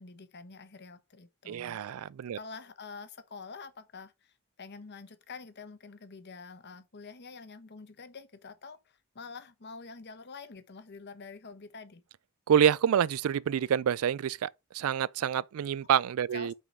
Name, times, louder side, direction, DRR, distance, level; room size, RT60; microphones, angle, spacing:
voice 1, 0.0-12.0 16.3-16.5, left 4 dB, 50° left, 1.0 m, -47 dB
voice 2, 1.5-2.4 12.5-16.5, right 8 dB, 80° right, 0.4 m, -27 dB
5.6 x 4.7 x 5.3 m
head